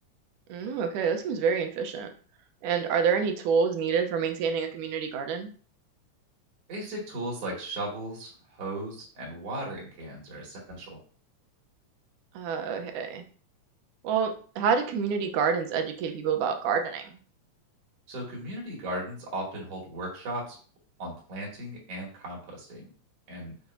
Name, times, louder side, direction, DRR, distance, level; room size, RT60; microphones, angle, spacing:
voice 1, 0.5-2.1 2.6-5.5 12.3-13.2 14.0-17.2, right 6 dB, 85° right, 6 dB, 2.4 m, -27 dB
voice 2, 6.7-11.0 18.1-20.6 21.0-22.9 23.3-23.5, right 1 dB, 55° right, -3 dB, 3.1 m, -36 dB
7.0 x 5.9 x 2.7 m, 0.41 s
omnidirectional pair, 3.5 m